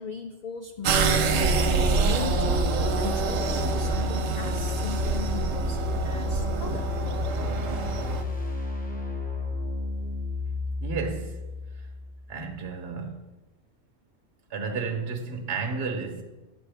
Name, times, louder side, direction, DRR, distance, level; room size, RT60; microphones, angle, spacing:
voice 1, 0.0-1.6 1.9-2.7 3.0-6.9, left 5 dB, 85° left, 0.3 m, -38 dB
sound 1, 0.7-12.5, left 3 dB, 10° left, 0.8 m, -31 dB
sound 2, 0.8-8.2, right 5 dB, 85° right, 1.1 m, -26 dB
voice 2, 10.8-11.4 11.7-11.8 12.3-13.3 14.5-16.2, right 4 dB, 55° right, 1.1 m, -32 dB
9.0 x 6.9 x 3.3 m
omnidirectional pair, 1.3 m